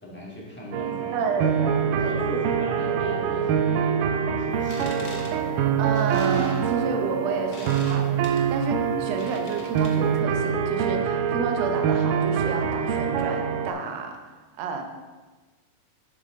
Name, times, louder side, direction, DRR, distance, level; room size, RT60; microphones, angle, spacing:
voice 1, 0.0-1.7 2.0-5.6, equal, 5° left, -5 dB, 1.4 m, -38 dB
sound 1, 0.7-13.7, right 7 dB, 85° right, 2.3 m, -25 dB
voice 2, 1.1-2.4 5.8-14.2 14.6-14.8, right 4 dB, 65° right, 4 dB, 1.8 m, -31 dB
sound 2, 4.5-10.2, left 2 dB, 80° left, 0.9 m, -44 dB
11.0 x 6.9 x 3.7 m, 1.3 s
omnidirectional pair, 3.8 m